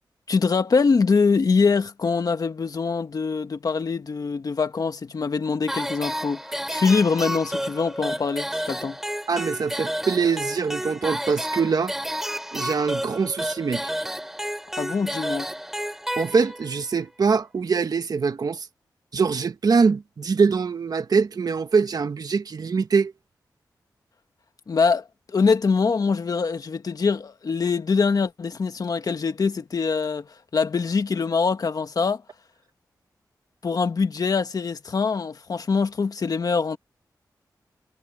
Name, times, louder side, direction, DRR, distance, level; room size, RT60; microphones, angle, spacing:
voice 1, 0.3-6.4 6.7-9.0 14.8-15.5 24.7-30.3 30.5-32.2 33.6-36.8, left 5 dB, 60° left, 1.7 m, -23 dB
sound 1, 5.7-16.8, equal, 5° right, 2.6 m, -31 dB
voice 2, 9.3-11.9 12.5-13.9 16.2-18.7 19.1-23.1, right 5 dB, 60° right, 1.4 m, -23 dB
wide cardioid pair, 80°, 7 cm